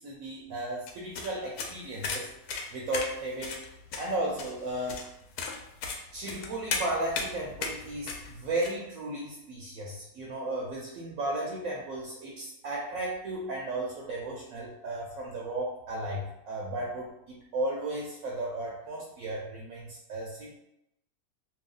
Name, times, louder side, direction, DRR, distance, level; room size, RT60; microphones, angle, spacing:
voice 1, 0.0-2.3 2.7-3.6 4.0-5.0 6.1-17.1 17.5-20.6, right 1 dB, 70° right, -2 dB, 1.0 m, -34 dB
sound 1, 0.9-8.7, left 4 dB, 75° left, 1.0 m, -36 dB
2.8 x 2.2 x 3.7 m, 0.83 s
omnidirectional pair, 1.7 m